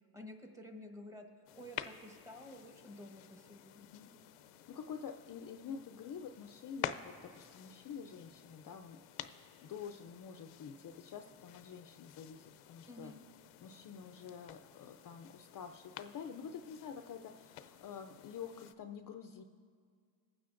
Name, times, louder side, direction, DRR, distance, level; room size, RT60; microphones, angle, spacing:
voice 1, 0.1-1.3 1.5-3.8 12.9-13.2, left 1 dB, 5° right, 3 dB, 1.1 m, -51 dB
sound 1, 1.5-18.7, left 11 dB, 85° left, 0.6 m, -50 dB
voice 2, 4.5-13.1 13.6-19.4, left 7 dB, 45° left, 7 dB, 0.5 m, -48 dB
21.0 x 9.3 x 2.5 m, 2.1 s
cardioid pair, 95°, 49 cm